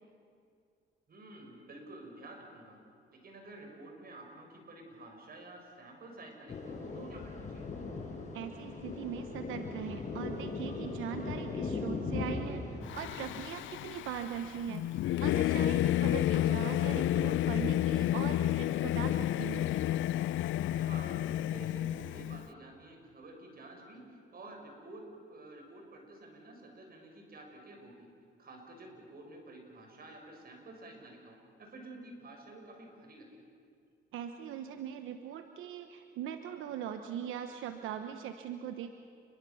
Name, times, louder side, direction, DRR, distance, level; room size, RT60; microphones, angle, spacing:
voice 1, 1.1-2.8 3.1-7.8 15.9-16.2 20.7-25.0 25.3-28.1 28.4-33.4, right 2 dB, 50° right, 2 dB, 6.7 m, -50 dB
Thunder, 6.5-13.6, left 4 dB, 40° left, 6.7 m, -39 dB
voice 2, 8.3-14.8 15.2-19.7 34.1-38.9, right 9 dB, 90° right, 7 dB, 1.1 m, -41 dB
Singing / Musical instrument, 12.9-22.4, left 13 dB, 75° left, 0.6 m, -31 dB
28.5 x 23.0 x 7.2 m, 2.3 s
cardioid pair, 90°, 20 cm